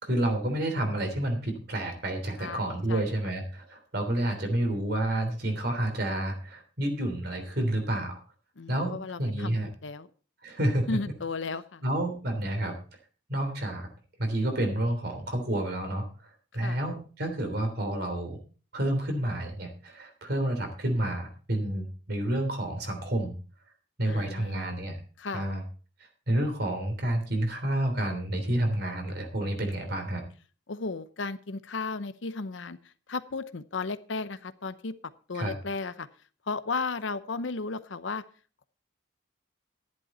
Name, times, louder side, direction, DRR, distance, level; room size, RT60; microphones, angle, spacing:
voice 1, 0.0-8.2 8.7-9.7 10.4-10.9 11.8-12.8 13.3-13.9 14.2-18.4 18.7-23.3 24.0-25.0 25.3-25.6 26.3-30.2 35.3-35.6, right 1 dB, 55° right, 5 dB, 3.3 m, -29 dB
voice 2, 2.4-3.1 8.6-9.5 9.8-10.1 10.9-11.8 16.5-16.8 24.1-24.7 25.2-25.4 30.7-35.0 35.3-36.1 36.5-38.2, left 3 dB, 75° left, 13 dB, 0.8 m, -34 dB
12.0 x 10.5 x 4.3 m, 0.38 s
head